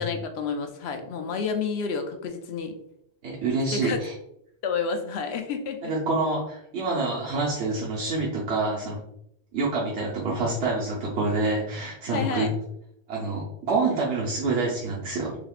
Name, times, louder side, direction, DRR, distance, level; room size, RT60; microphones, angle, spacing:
voice 1, 0.0-2.8 3.7-4.0 4.6-5.9 12.1-12.5, left 5 dB, 70° left, 6 dB, 0.8 m, -30 dB
voice 2, 3.2-4.1 5.8-9.0 9.5-12.5 13.1-15.3, right 3 dB, 75° right, -5 dB, 1.0 m, -27 dB
3.5 x 3.3 x 2.4 m, 0.76 s
omnidirectional pair, 1.2 m